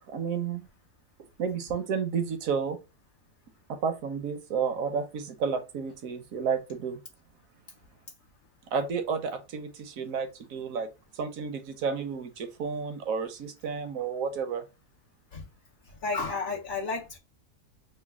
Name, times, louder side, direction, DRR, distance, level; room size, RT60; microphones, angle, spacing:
voice 1, 0.1-0.7 1.4-2.8 3.7-7.0 8.7-10.9 11.1-14.7, right 6 dB, 70° right, 0.9 m, -31 dB
voice 2, 15.9-17.2, left 3 dB, 70° left, 0.4 m, -32 dB
3.1 x 2.2 x 3.3 m
omnidirectional pair, 1.7 m